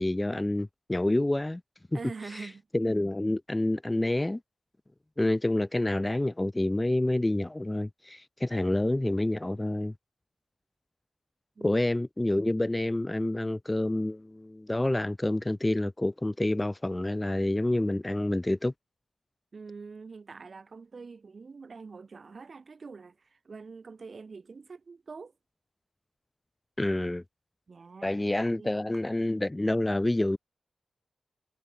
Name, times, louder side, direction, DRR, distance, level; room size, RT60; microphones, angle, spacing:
voice 1, 0.0-1.6 2.7-4.4 5.2-9.9 11.6-18.7 26.8-27.2 28.0-30.4, left 1 dB, 15° left, 1.4 m, -28 dB
voice 2, 1.9-2.7 11.6-11.8 19.5-25.3 27.7-28.1 28.5-29.0, right 4 dB, 50° right, 6.5 m, -45 dB
cardioid pair, 75°, 0 cm